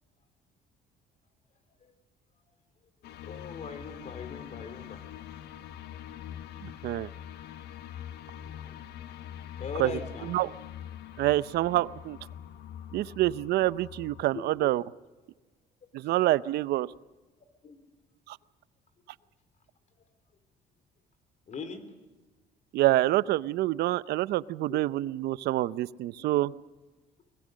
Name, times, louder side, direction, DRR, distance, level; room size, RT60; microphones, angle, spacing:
sound 1, 3.0-14.2, left 10 dB, 80° left, 1.3 m, -44 dB
voice 1, 3.2-5.0 8.4-8.8 9.6-10.3 14.3-14.7 17.6-17.8 20.0-20.1 21.5-21.9 24.7-24.9 26.2-26.4, left 5 dB, 45° left, 10 dB, 3.6 m, -41 dB
voice 2, 6.6-7.1 9.8-9.9 10.3-10.5 11.2-12.2 12.9-14.8 15.9-16.9 18.3-18.4 22.7-26.5, right 16 dB, 75° right, 18 dB, 0.6 m, -27 dB
23.5 x 20.5 x 6.4 m, 1.3 s
cardioid pair, 110°, 17 cm